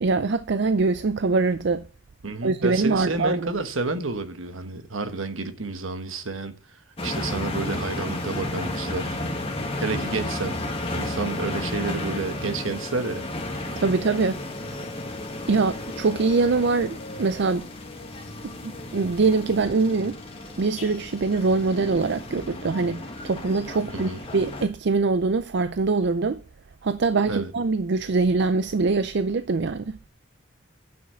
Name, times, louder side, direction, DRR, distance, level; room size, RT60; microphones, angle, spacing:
voice 1, 0.0-1.8 2.4-3.5 13.8-14.4 15.5-17.7 18.4-20.2 20.6-26.4 26.8-30.0, right 3 dB, 55° right, 0.5 m, -23 dB
voice 2, 2.2-6.5 7.0-9.2 9.8-10.6 10.9-13.2 23.9-24.2 27.2-27.5, right 3 dB, 70° right, 1.4 m, -30 dB
sound 1, 7.0-24.7, left 1 dB, 25° left, 1.9 m, -33 dB
9.4 x 6.1 x 7.4 m
head